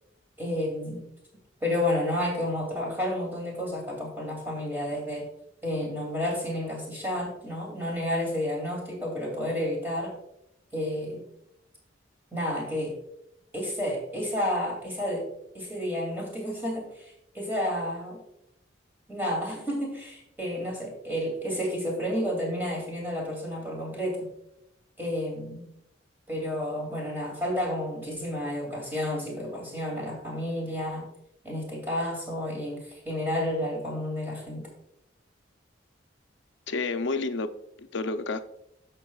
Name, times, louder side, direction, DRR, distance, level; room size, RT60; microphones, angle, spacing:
voice 1, 0.4-1.0 1.6-5.3 5.6-10.1 10.7-11.2 12.3-12.9 13.5-15.3 15.5-18.2 19.1-24.3 25.0-25.7 26.3-31.1 31.4-34.6, left 1 dB, 10° right, -2 dB, 2.6 m, -31 dB
voice 2, 36.7-38.4, left 3 dB, 70° left, 10 dB, 0.5 m, -30 dB
11.0 x 6.8 x 2.4 m, 0.79 s
head